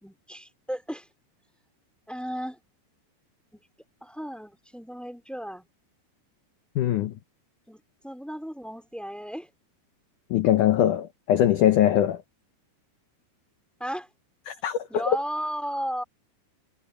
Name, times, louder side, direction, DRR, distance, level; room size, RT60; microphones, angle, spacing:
voice 1, 0.0-1.1 2.1-2.6 3.5-3.6 4.0-5.7 7.7-9.5 13.8-14.1 14.9-16.0, equal, ahead, 2.2 m, -34 dB
voice 2, 6.8-7.1 10.3-12.2 14.5-15.0, left 11 dB, 90° left, 1.8 m, -22 dB
omnidirectional pair, 4.9 m